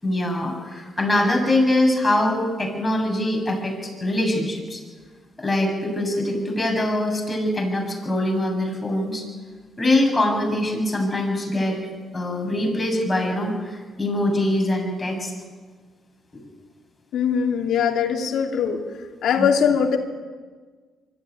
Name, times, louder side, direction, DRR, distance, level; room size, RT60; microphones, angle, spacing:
voice 1, 0.0-4.8 5.4-9.2 9.8-11.8 12.1-15.3 16.3-16.4 19.3-19.5, left 1 dB, 20° left, 1 dB, 7.6 m, -23 dB
voice 2, 17.1-18.8 19.2-20.0, left 7 dB, 75° left, 3 dB, 2.8 m, -21 dB
24.0 x 14.0 x 9.7 m, 1.5 s
cardioid pair, 90°, 0 cm